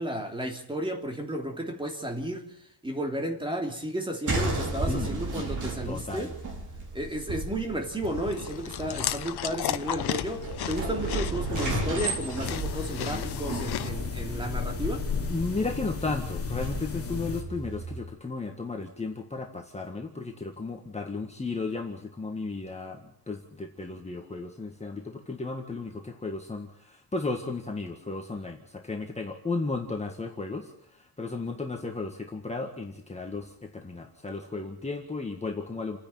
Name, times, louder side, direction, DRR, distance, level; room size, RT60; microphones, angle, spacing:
voice 1, 0.0-2.5 2.8-6.3 6.9-15.0, right 1 dB, 10° right, 3.0 m, -33 dB
sound 1, 4.3-18.0, right 2 dB, 45° right, 5.6 m, -35 dB
voice 2, 5.8-6.3 13.9-14.0 15.3-36.0, left 3 dB, 15° left, 1.8 m, -34 dB
Chewing mastication, 8.0-13.9, left 11 dB, 65° left, 1.1 m, -34 dB
sound 2, 12.4-17.4, left 5 dB, 35° left, 2.8 m, -34 dB
29.5 x 10.5 x 8.9 m
wide cardioid pair, 170°, 42 cm